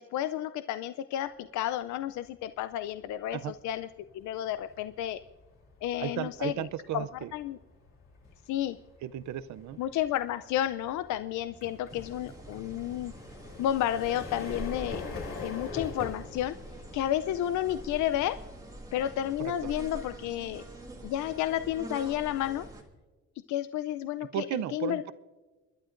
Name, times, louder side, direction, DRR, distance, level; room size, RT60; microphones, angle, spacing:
voice 1, 0.0-3.9 4.1-5.2 5.8-6.7 6.9-7.1 7.3-7.6 8.5-8.8 9.8-13.1 13.6-15.1 15.4-16.6 16.9-18.4 18.9-20.6 21.0-22.7 23.5-25.1, left 12 dB, 70° left, 12 dB, 0.5 m, -31 dB
sound 1, 2.3-2.6 3.0-19.7, left 4 dB, 45° left, 3.3 m, -45 dB
voice 2, 6.0-7.3 9.0-9.8 19.4-19.6 24.3-25.1, right 11 dB, 65° right, 16 dB, 0.6 m, -34 dB
sound 2, 11.9-22.8, right 2 dB, 10° right, 1.8 m, -45 dB
29.5 x 11.5 x 2.5 m, 1.3 s
cardioid pair, 135°, 30 cm